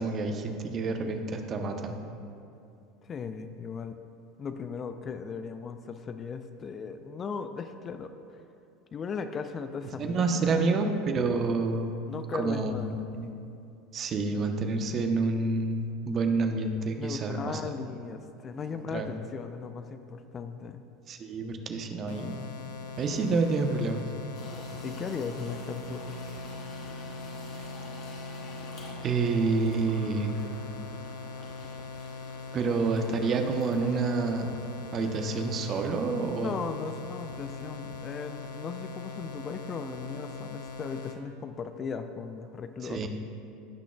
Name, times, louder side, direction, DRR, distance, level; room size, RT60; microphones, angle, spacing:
voice 1, 0.0-2.0 10.0-11.9 12.4-13.3 13.9-17.6 18.9-19.1 21.1-22.5 23.0-24.0 29.0-30.4 32.5-34.5 34.9-36.5 42.8-43.1, right 3 dB, 40° right, 5 dB, 0.8 m, -28 dB
voice 2, 3.0-4.0 4.4-8.4 8.9-10.7 12.1-13.0 17.0-20.8 24.8-26.2 36.4-43.1, left 5 dB, 35° left, 9 dB, 0.5 m, -37 dB
sound 1, 22.1-41.2, left 4 dB, 70° left, 0.6 m, -41 dB
sound 2, 24.3-34.0, right 1 dB, 50° left, 1.9 m, -47 dB
16.0 x 6.1 x 2.3 m, 2.7 s
hypercardioid pair, 75°, 0 cm